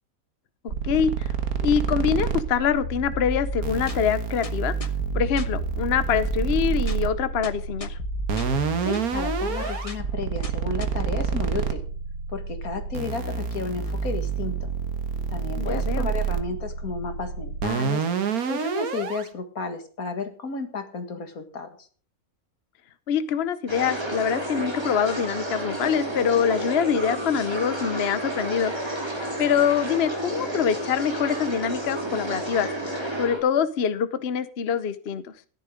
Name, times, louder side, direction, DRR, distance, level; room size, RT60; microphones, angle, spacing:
voice 1, 0.6-1.3 1.6-4.7 5.1-8.0 15.6-16.1 23.1-28.7 29.4-32.7 33.2-35.2, left 7 dB, 50° left, 13 dB, 0.9 m, -24 dB
sound 1, 0.7-19.3, right 6 dB, 80° right, 1.8 m, -28 dB
sound 2, 2.8-10.9, equal, 25° left, 1.0 m, -34 dB
voice 2, 8.8-11.8 12.3-14.7 15.3-21.9, left 4 dB, 75° left, 7 dB, 2.3 m, -33 dB
sound 3, 23.7-33.4, right 1 dB, 15° right, 4.1 m, -31 dB
13.5 x 11.0 x 5.0 m, 0.42 s
omnidirectional pair, 1.5 m